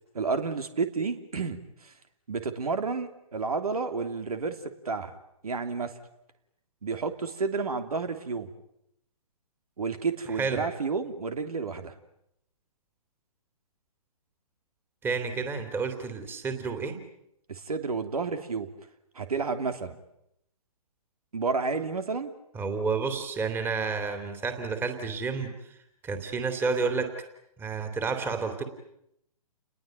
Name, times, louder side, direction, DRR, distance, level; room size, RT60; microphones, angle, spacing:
voice 1, 0.1-1.9 2.3-5.1 5.4-6.0 6.8-8.5 9.8-11.9 17.5-18.7 19.1-20.0 21.3-22.3, right 4 dB, 75° right, 9 dB, 3.1 m, -31 dB
voice 2, 15.0-17.0 22.5-25.5 26.0-27.1 27.6-28.6, right 4 dB, 10° right, 7 dB, 3.0 m, -30 dB
30.0 x 21.0 x 9.2 m, 0.78 s
hypercardioid pair, 140°, 19 cm